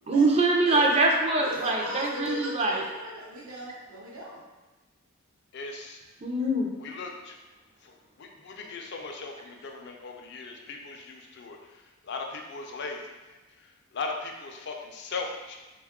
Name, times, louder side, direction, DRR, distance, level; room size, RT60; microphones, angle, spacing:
voice 1, 0.1-2.8 6.2-6.7, right 2 dB, 30° right, 0 dB, 0.4 m, -24 dB
voice 2, 1.4-4.4, left 1 dB, 75° right, -6 dB, 0.7 m, -38 dB
voice 3, 5.5-6.0 6.8-7.4 7.8-7.9 8.2-11.6 12.0-13.0 13.9-15.6, left 3 dB, 50° left, 2 dB, 0.4 m, -38 dB
3.5 x 2.3 x 3.5 m, 1.1 s
head